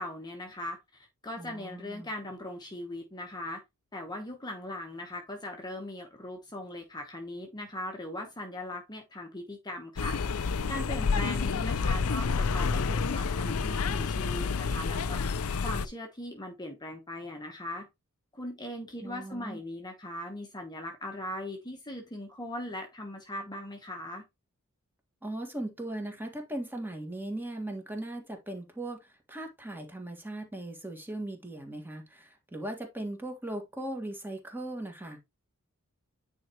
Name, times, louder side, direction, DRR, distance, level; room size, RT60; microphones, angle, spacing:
voice 1, 0.0-3.6 3.9-17.9 18.3-24.2, left 1 dB, 20° left, 1.1 m, -39 dB
voice 2, 1.4-2.1 11.1-11.4 19.0-19.6 25.2-35.2, right 1 dB, 10° right, 1.8 m, -38 dB
sound 1, 10.0-15.9, left 5 dB, 70° left, 0.5 m, -29 dB
9.4 x 4.5 x 3.0 m
head